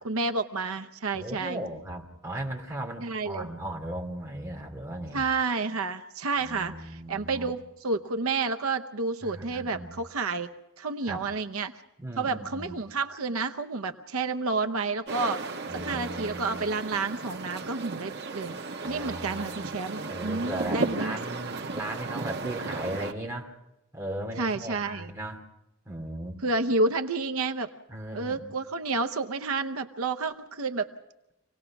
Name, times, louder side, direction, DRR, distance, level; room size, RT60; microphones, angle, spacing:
voice 1, 0.0-1.6 3.0-3.5 5.1-10.5 10.8-11.7 12.2-15.4 15.7-18.6 18.9-21.2 24.4-25.1 26.4-27.7 28.1-30.9, right 3 dB, 75° right, 6 dB, 0.8 m, -30 dB
voice 2, 1.1-5.2 6.4-7.5 9.2-9.9 11.1-11.3 12.0-12.8 15.7-16.7 18.8-19.7 20.1-23.5 23.9-25.4 25.9-26.4 27.9-28.5, right 1 dB, 15° right, 0 dB, 2.7 m, -37 dB
sound 1, 15.1-23.1, right 3 dB, 50° right, 1.5 m, -35 dB
26.0 x 18.0 x 6.0 m, 0.91 s
head